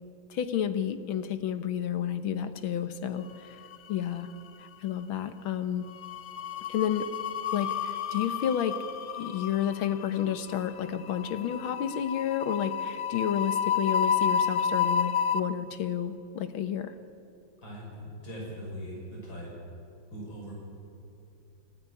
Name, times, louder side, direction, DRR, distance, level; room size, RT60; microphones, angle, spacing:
voice 1, 0.3-3.6 3.9-4.3 4.8-5.9 6.7-7.1 7.5-8.9 9.1-16.9, left 9 dB, 90° left, 11 dB, 1.9 m, -31 dB
sound 1, 3.4-4.1 4.4-4.7 5.9-15.4, left 7 dB, 55° left, 0.8 m, -31 dB
voice 2, 17.6-19.5 20.1-20.6, equal, 70° left, -3 dB, 6.9 m, -40 dB
26.5 x 13.0 x 9.8 m, 2.6 s
omnidirectional pair, 2.2 m